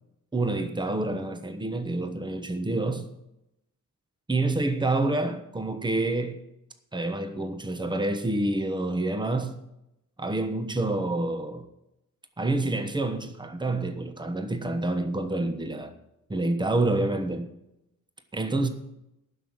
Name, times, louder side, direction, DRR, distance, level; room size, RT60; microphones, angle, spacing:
voice 1, 0.3-3.1 4.3-6.4 6.9-9.5 10.2-11.6 12.4-15.9 16.3-17.5 18.3-18.7, right 2 dB, 15° right, 1.2 m, -27 dB
11.5 x 6.3 x 8.7 m
wide cardioid pair, 115°, 30 cm